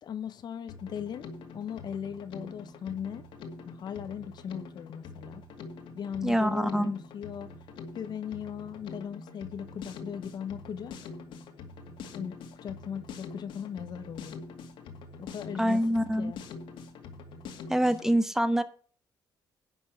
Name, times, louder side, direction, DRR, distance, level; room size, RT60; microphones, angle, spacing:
voice 1, 0.0-3.3 3.7-5.4 5.9-7.5 7.9-11.0 12.1-14.4 15.2-15.8 16.2-16.4, left 8 dB, 55° left, 0.8 m, -38 dB
Drum kit, 0.7-18.1, left 4 dB, 80° left, 2.2 m, -45 dB
voice 2, 6.2-6.9 15.6-16.3 17.7-18.6, equal, 5° right, 1.3 m, -25 dB
11.0 x 6.1 x 6.9 m
cardioid pair, 100°, 8 cm